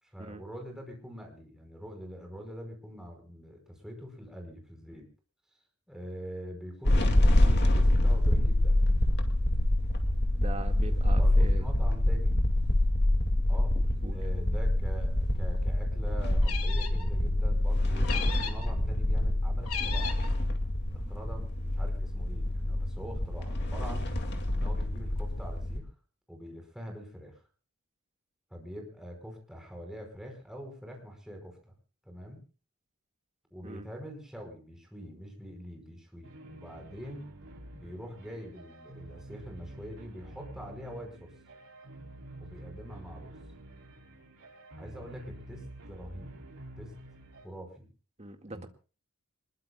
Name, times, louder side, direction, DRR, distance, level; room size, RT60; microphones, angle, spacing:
voice 1, 0.0-5.1 5.9-8.8 11.1-12.4 13.5-13.8 14.1-18.1 18.4-20.2 20.9-24.1 24.5-25.9 26.3-27.4 28.5-31.7 32.0-32.4 33.5-37.3 37.7-41.3 42.4-43.3 44.8-46.3 46.8-46.9 47.4-47.9 48.5-48.7, equal, 5° right, 2 dB, 5.0 m, -44 dB
sound 1, 6.9-25.8, left 1 dB, 50° left, 2.3 m, -26 dB
voice 2, 10.4-11.7 14.0-14.2 33.6-33.9 48.2-48.7, right 2 dB, 30° right, 5 dB, 1.9 m, -41 dB
sound 2, 16.4-17.1 18.0-18.7 19.6-20.3, left 7 dB, 75° left, 2.0 m, -36 dB
sound 3, 36.2-47.5, right 1 dB, 75° right, 3.7 m, -48 dB
26.0 x 21.0 x 2.3 m, 0.36 s
head